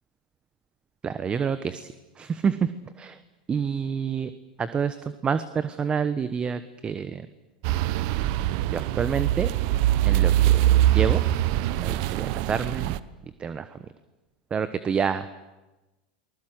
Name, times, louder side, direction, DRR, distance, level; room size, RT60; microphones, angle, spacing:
voice 1, 1.0-1.9 2.2-2.7 3.0-3.2 3.5-4.3 4.6-7.3 8.7-9.5 10.1-10.6 10.9-11.2 11.8-12.9 13.4-13.8 14.5-15.3, right 6 dB, 25° right, 13 dB, 1.1 m, -28 dB
sound 1, 7.6-13.0, right 13 dB, 60° right, 1.0 m, -23 dB
28.5 x 20.0 x 7.9 m, 1.1 s
hypercardioid pair, 100°, 4 cm